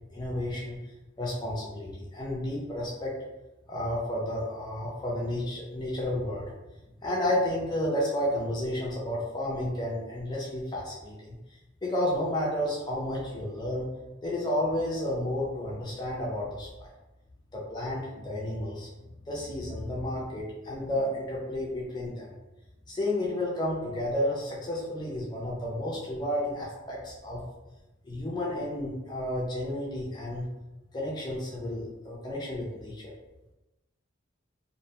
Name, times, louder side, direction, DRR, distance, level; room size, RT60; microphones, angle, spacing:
voice 1, 0.1-0.8 1.2-3.1 3.7-6.5 7.0-11.4 11.8-13.9 14.2-16.9 17.5-18.9 19.2-22.3 22.9-27.4 28.0-30.5 30.9-33.1, left 1 dB, 20° left, -4 dB, 0.4 m, -31 dB
2.4 x 2.1 x 2.8 m, 1.0 s
head